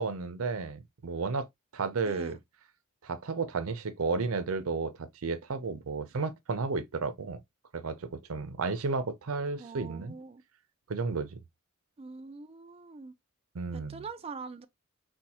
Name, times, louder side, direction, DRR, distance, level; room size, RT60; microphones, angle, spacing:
voice 1, 0.0-1.5 1.7-2.4 3.0-7.4 7.7-10.2 10.9-11.4 13.5-14.0, right 4 dB, 75° right, 0.6 m, -33 dB
voice 2, 2.0-2.4 9.6-10.4 12.0-13.1 13.7-14.7, right 4 dB, 30° right, 0.4 m, -44 dB
4.4 x 2.2 x 2.8 m
head